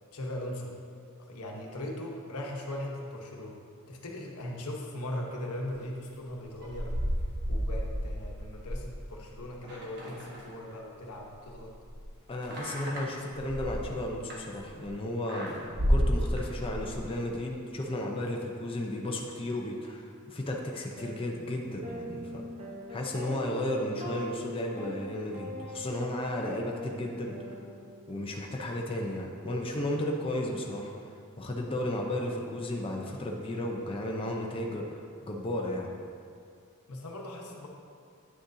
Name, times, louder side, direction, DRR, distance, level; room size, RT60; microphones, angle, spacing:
voice 1, 0.1-0.7 1.2-3.6 3.9-6.9 7.5-11.7 36.9-37.7, left 1 dB, 90° left, 0 dB, 1.0 m, -39 dB
sound 1, 6.4-10.9 11.2-14.9 15.3-17.1, equal, 50° right, 1.4 m, -32 dB
voice 2, 12.3-22.5 22.9-27.6 28.1-35.9, left 1 dB, 25° left, 0 dB, 0.6 m, -34 dB
sound 2, 21.0-21.1 21.8-28.2, right 1 dB, 30° right, 0.9 m, -42 dB
9.5 x 6.4 x 2.7 m, 2.3 s
head